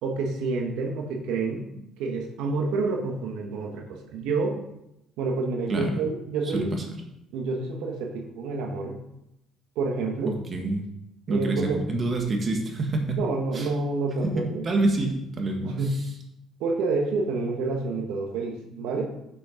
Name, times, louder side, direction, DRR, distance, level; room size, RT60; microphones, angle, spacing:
voice 1, 0.0-4.6 5.2-6.8 7.3-9.0 9.7-10.4 11.3-11.8 13.2-14.7 15.6-15.9 16.6-19.1, right 3 dB, 85° right, 2 dB, 1.1 m, -28 dB
voice 2, 6.4-6.8 10.2-10.8 11.3-13.2 13.5-13.7 14.2-14.3 14.6-15.8, right 2 dB, 35° right, 3 dB, 1.5 m, -27 dB
6.6 x 5.9 x 5.1 m, 0.84 s
cardioid pair, 100°, 0 cm